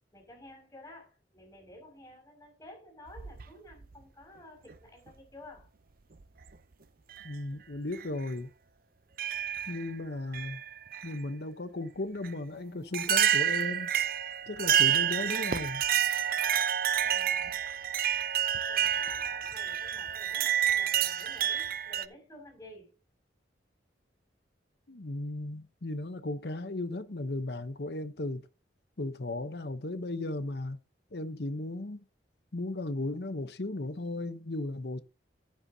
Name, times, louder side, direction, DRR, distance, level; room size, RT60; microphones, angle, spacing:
voice 1, 0.1-5.7 17.0-17.6 18.7-22.9, left 1 dB, 15° left, 5.8 m, -52 dB
sound 1, 3.1-3.9 5.1-5.2 6.2-6.5 7.1-7.3 7.9-8.0 9.2-9.9 10.3-11.1 12.2-12.3 12.9-22.1, right 10 dB, 50° right, 0.6 m, -29 dB
voice 2, 7.2-8.5 9.7-10.6 11.0-13.9 14.5-15.8 24.9-28.5 29.0-30.8 31.1-32.0 32.5-35.0, left 2 dB, 60° left, 0.9 m, -36 dB
11.0 x 9.4 x 2.8 m
head